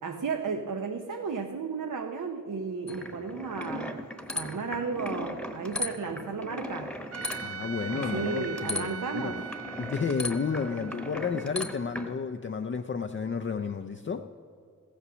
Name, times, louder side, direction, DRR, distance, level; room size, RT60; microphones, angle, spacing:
voice 1, 0.0-4.0 4.3-6.9 7.9-9.4, right 4 dB, 80° right, 4 dB, 0.8 m, -34 dB
sound 1, 2.9-12.1, left 1 dB, 5° left, 1.0 m, -37 dB
Trumpet, 7.1-12.3, right 7 dB, 50° right, 0.4 m, -42 dB
voice 2, 7.4-9.4 9.8-14.3, left 5 dB, 40° left, 6 dB, 0.4 m, -32 dB
15.0 x 8.4 x 6.1 m, 2.4 s
wide cardioid pair, 80°, 31 cm